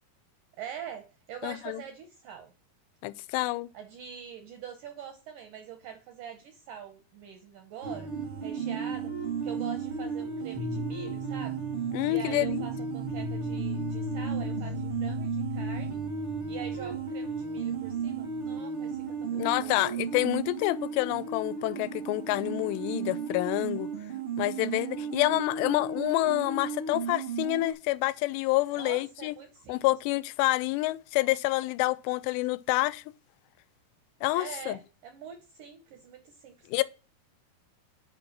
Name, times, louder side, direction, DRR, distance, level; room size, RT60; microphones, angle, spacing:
voice 1, 0.6-2.5 3.7-8.1 8.4-9.1 9.4-11.7 12.1-16.0 16.5-20.0 24.9-25.8 28.7-29.8 34.3-36.8, right 8 dB, 75° right, 1.9 m, -44 dB
voice 2, 1.4-1.8 3.0-3.7 11.9-12.7 19.3-23.9 24.4-29.4 29.7-33.0 34.2-34.8 36.7-36.8, left 19 dB, 90° left, 2.7 m, -28 dB
sound 1, 7.8-27.7, right 4 dB, 60° right, 0.7 m, -34 dB
7.7 x 5.3 x 6.0 m
omnidirectional pair, 4.8 m